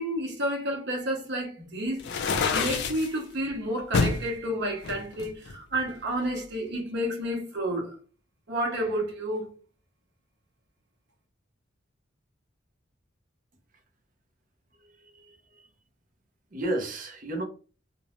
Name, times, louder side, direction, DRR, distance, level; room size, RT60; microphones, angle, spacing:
voice 1, 0.0-2.1 2.5-8.0 8.5-9.5, right 1 dB, 60° right, 0.9 m, -30 dB
sound 1, 2.0-3.1 3.9-4.2 4.8-5.9, left 4 dB, 60° left, 0.4 m, -27 dB
voice 2, 14.8-15.7 16.5-17.4, right 2 dB, 40° right, 0.6 m, -33 dB
2.5 x 2.0 x 3.0 m
head